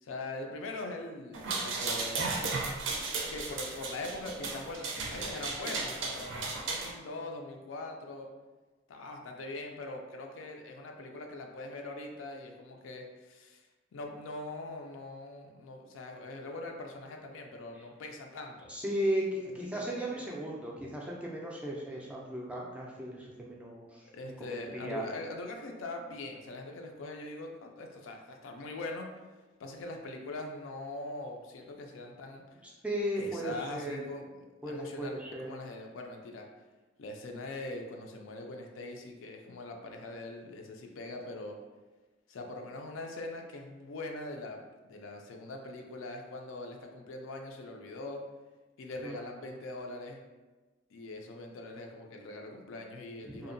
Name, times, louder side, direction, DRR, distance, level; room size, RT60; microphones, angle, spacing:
voice 1, 0.0-2.2 3.2-8.3 8.9-13.6 13.9-18.8 19.7-20.2 24.1-29.1 29.6-32.4 33.2-36.5 37.0-41.6 42.3-48.2 48.8-50.2 50.9-53.5, left 2 dB, 90° left, 3 dB, 0.4 m, -42 dB
sound 1, 1.3-6.9, right 3 dB, 80° right, 0.4 m, -35 dB
voice 2, 18.7-24.1 24.4-25.0 32.6-34.0 34.6-35.5 49.0-49.2 53.2-53.5, right 1 dB, 5° right, -3 dB, 0.3 m, -36 dB
2.6 x 2.1 x 2.5 m, 1.2 s
head